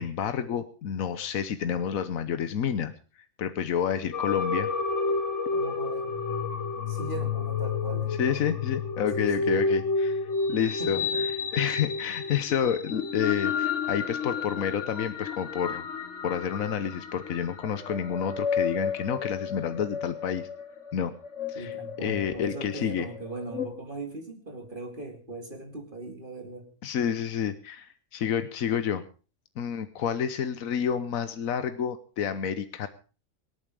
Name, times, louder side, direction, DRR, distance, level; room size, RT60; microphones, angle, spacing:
voice 1, 0.0-2.9 3.4-4.7 8.2-11.0 11.5-15.8 16.2-20.5 20.9-21.1 21.5-23.1 26.8-29.0 29.6-32.9, left 8 dB, 85° left, 11 dB, 1.3 m, -29 dB
sound 1, 4.1-23.7, left 5 dB, 60° left, 1.8 m, -31 dB
voice 2, 5.5-6.2 6.9-8.6 9.1-9.6 10.8-11.3 21.5-26.7, right 2 dB, 40° right, 4 dB, 2.7 m, -39 dB
24.5 x 9.0 x 4.8 m, 0.36 s
omnidirectional pair, 1.4 m